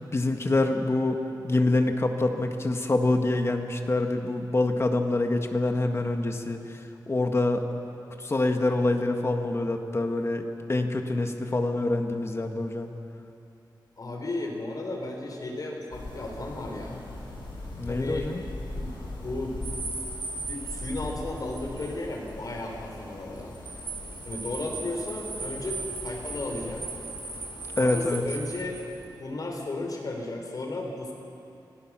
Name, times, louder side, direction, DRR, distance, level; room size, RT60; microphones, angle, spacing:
voice 1, 0.1-6.8 7.1-7.6 8.2-12.9 17.8-18.4 27.8-28.2, left 2 dB, 35° left, 4 dB, 1.6 m, -26 dB
voice 2, 14.0-17.0 17.9-18.3 18.8-18.9 19.2-19.6 20.5-23.5 24.3-26.8 27.8-28.8 29.2-31.1, left 2 dB, 55° left, 1 dB, 3.8 m, -34 dB
sound 1, 15.9-29.2, left 1 dB, 85° left, 6.9 m, -41 dB
sound 2, 19.6-22.0 22.3-22.4 23.4-29.1, right 4 dB, 25° right, 2.7 m, -38 dB
26.0 x 18.0 x 6.2 m, 2.7 s
wide cardioid pair, 125°, 8 cm